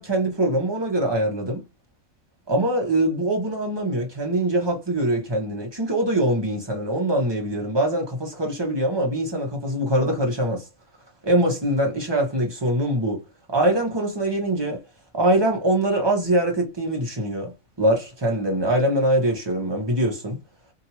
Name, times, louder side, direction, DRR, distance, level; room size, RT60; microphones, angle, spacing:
voice 1, 0.0-1.6 2.5-10.7 11.2-13.2 13.5-14.8 15.1-17.5 17.8-20.4, right 1 dB, 20° right, 0.9 m, -23 dB
2.9 x 2.6 x 2.8 m
omnidirectional pair, 1.4 m